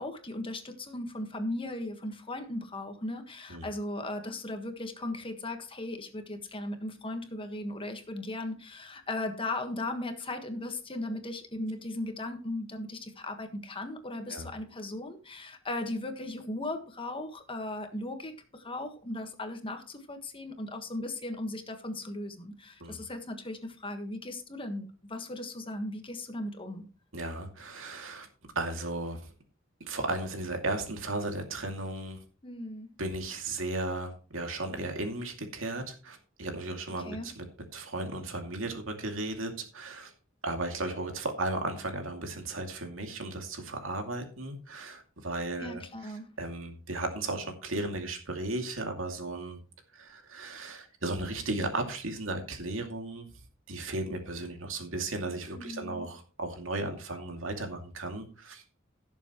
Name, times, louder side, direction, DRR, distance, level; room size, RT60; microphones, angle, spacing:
voice 1, 0.0-26.8 32.4-32.9 37.0-37.3 45.6-46.3 55.5-56.1, left 1 dB, 25° left, 6 dB, 1.5 m, -37 dB
voice 2, 27.1-28.3 28.6-29.3 29.8-32.2 33.0-37.4 37.7-40.1 40.4-45.8 46.4-49.6 49.9-53.3 53.7-58.7, right 2 dB, 80° right, 4 dB, 2.4 m, -35 dB
17.5 x 7.2 x 3.1 m, 0.37 s
head